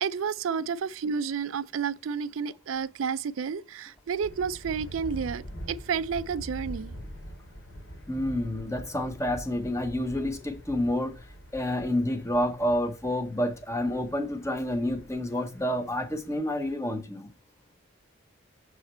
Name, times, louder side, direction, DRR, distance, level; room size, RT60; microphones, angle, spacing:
voice 1, 0.0-6.9, right 6 dB, 85° right, 0.4 m, -31 dB
Thunder, 4.2-16.7, equal, 85° left, 3.0 m, -44 dB
voice 2, 8.1-11.1 11.5-17.3, left 1 dB, 15° left, 0.8 m, -29 dB
7.0 x 4.9 x 4.2 m
head